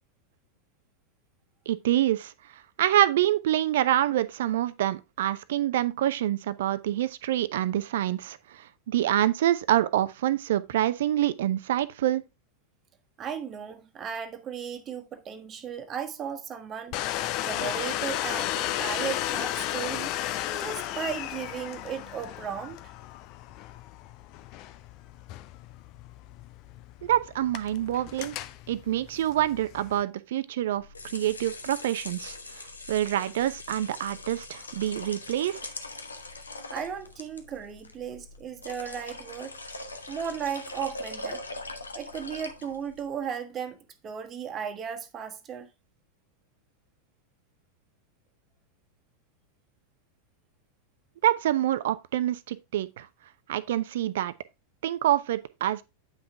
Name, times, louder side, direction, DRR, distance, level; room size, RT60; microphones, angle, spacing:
voice 1, 1.7-2.3 2.8-12.2 27.0-28.4 28.7-35.6 51.2-53.1 53.5-54.3 54.8-55.8, right 12 dB, 55° right, 0.7 m, -26 dB
voice 2, 13.2-16.9 17.4-20.2 20.5-22.8 36.7-39.6 40.1-41.4 41.9-43.8 44.0-45.7, right 7 dB, 25° right, 1.4 m, -35 dB
Domestic sounds home sounds, 16.9-30.0, left 13 dB, 40° left, 0.6 m, -34 dB
sound 1, 30.7-43.1, left 2 dB, 75° left, 1.1 m, -41 dB
9.2 x 5.8 x 3.4 m
figure-of-eight pair, 90°, 0 cm